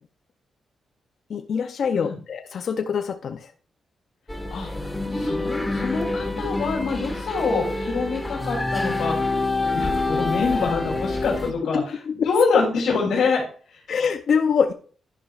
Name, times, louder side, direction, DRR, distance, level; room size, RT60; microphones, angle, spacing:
voice 1, 1.3-3.5 11.4-12.6 13.9-14.7, left 6 dB, 60° left, 7 dB, 0.6 m, -24 dB
sound 1, 4.3-11.5, left 2 dB, 10° left, 1.5 m, -26 dB
voice 2, 5.1-9.4 9.7-13.4 13.7-13.8, left 4 dB, 85° left, -3 dB, 2.9 m, -25 dB
11.0 x 10.5 x 2.4 m, 0.42 s
cardioid pair, 105°, 0 cm